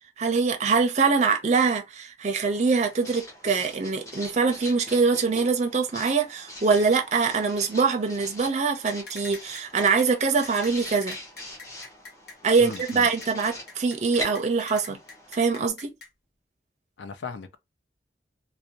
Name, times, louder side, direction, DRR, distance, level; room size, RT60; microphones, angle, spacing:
voice 1, 0.2-11.2 12.4-15.0 15.3-15.9, right 4 dB, 40° right, 0.5 m, -23 dB
Writing, 2.4-15.7, left 1 dB, 15° left, 0.8 m, -42 dB
sound 1, 8.9-16.1, left 3 dB, 60° left, 0.9 m, -43 dB
voice 2, 12.6-13.1 17.0-17.6, left 4 dB, 80° left, 0.5 m, -37 dB
2.6 x 2.0 x 2.8 m
head